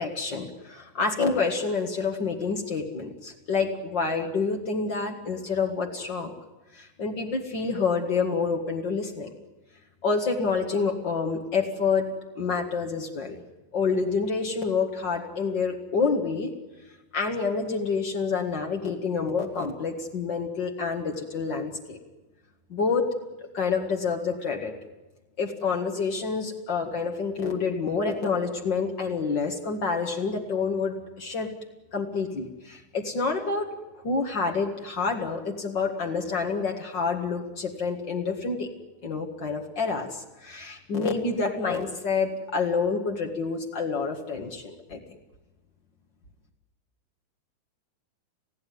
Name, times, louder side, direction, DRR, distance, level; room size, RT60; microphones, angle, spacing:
voice 1, 0.0-6.3 6.7-9.3 10.0-12.0 12.3-13.4 13.7-16.5 17.1-22.0 22.7-23.1 23.4-24.7 25.4-31.5 31.9-38.7 39.0-45.0, left 4 dB, 70° left, 2 dB, 1.0 m, -28 dB
30.0 x 16.5 x 9.5 m, 1.1 s
omnidirectional pair, 5.3 m